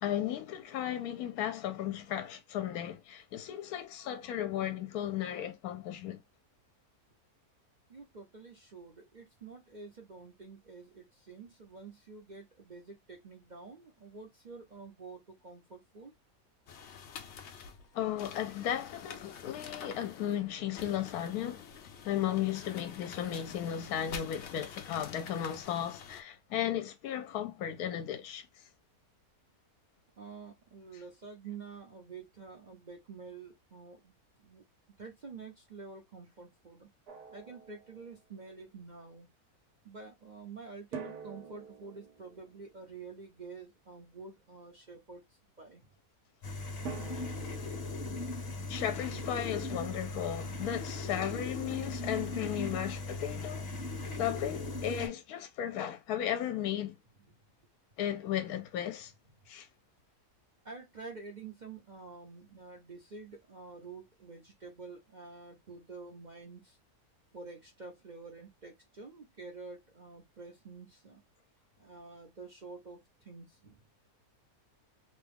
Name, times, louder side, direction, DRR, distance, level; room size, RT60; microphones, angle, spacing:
voice 1, 0.0-6.2 17.9-21.7 22.0-28.5 48.7-53.7 54.2-57.0 58.0-59.1 59.5-59.7, left 10 dB, 80° left, 1.1 m, -35 dB
voice 2, 7.9-16.1 30.2-34.1 34.4-34.6 35.0-36.9 37.3-39.3 39.8-45.2 45.6-45.9 49.0-49.4 60.6-66.8 67.3-71.2 71.8-73.8, right 4 dB, 40° right, 0.7 m, -48 dB
sound 1, 16.7-26.2, left 6 dB, 60° left, 0.7 m, -47 dB
Drum, 37.1-38.4 40.9-43.9 46.9-49.7, right 5 dB, 85° right, 1.3 m, -48 dB
sound 2, 46.4-55.1, left 2 dB, 45° left, 1.0 m, -38 dB
3.0 x 2.3 x 3.3 m
omnidirectional pair, 1.6 m